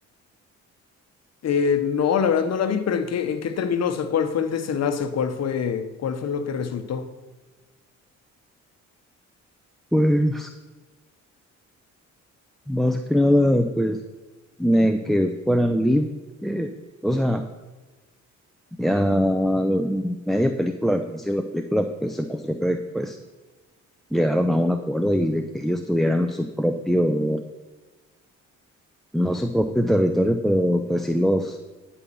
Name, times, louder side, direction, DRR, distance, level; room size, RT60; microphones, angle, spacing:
voice 1, 1.4-7.1, left 7 dB, 60° left, 1.1 m, -24 dB
voice 2, 9.9-10.5 12.7-14.0 14.6-16.1 16.4-16.7 17.0-17.4 18.8-23.2 24.1-27.4 29.1-31.6, equal, ahead, 0.7 m, -22 dB
11.5 x 5.6 x 7.0 m
cardioid pair, 90°, 30 cm